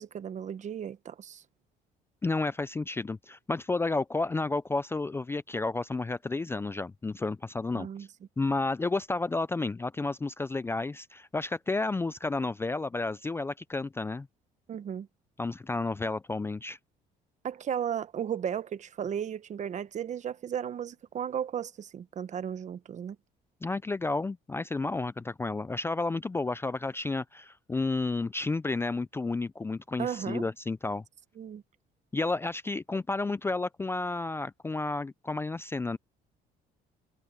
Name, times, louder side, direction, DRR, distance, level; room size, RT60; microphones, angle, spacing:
voice 1, 0.0-1.4 7.7-8.1 14.7-15.1 17.4-23.2 30.0-30.4 31.4-31.6, right 8 dB, 45° right, 1.1 m, -35 dB
voice 2, 2.2-7.9 8.4-14.3 15.4-16.8 23.6-31.0 32.1-36.0, left 3 dB, 15° left, 0.4 m, -31 dB
cardioid pair, 110°, 17 cm